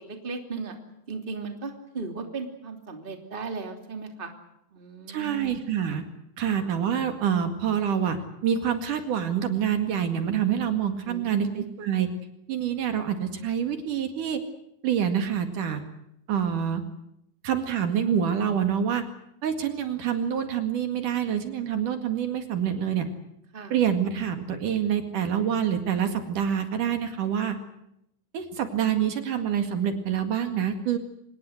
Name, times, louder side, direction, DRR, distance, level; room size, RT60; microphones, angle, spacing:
voice 1, 0.1-0.8 1.1-4.3 4.7-5.6 6.5-6.7 11.0-11.8 23.5-23.7, right 4 dB, 15° right, 5 dB, 2.7 m, -36 dB
voice 2, 5.1-6.0 6.4-8.2 8.4-12.1 12.5-14.4 14.8-15.8 16.3-16.8 17.4-19.1 19.4-23.1 23.7-27.6 28.3-31.0, right 8 dB, 65° right, 7 dB, 3.5 m, -26 dB
25.5 x 21.0 x 7.9 m, 0.79 s
omnidirectional pair, 4.0 m